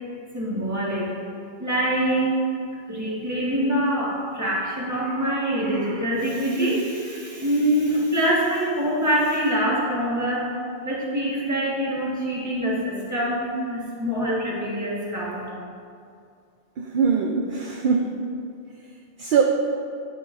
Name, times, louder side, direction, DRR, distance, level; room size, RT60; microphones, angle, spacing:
voice 1, 0.3-1.2 1.6-2.4 2.9-10.5 10.8-15.5, right 1 dB, 15° right, -6 dB, 1.3 m, -24 dB
voice 2, 16.8-18.1 19.2-19.4, right 6 dB, 60° right, 2 dB, 0.6 m, -22 dB
10.0 x 5.2 x 2.5 m, 2.4 s
omnidirectional pair, 1.0 m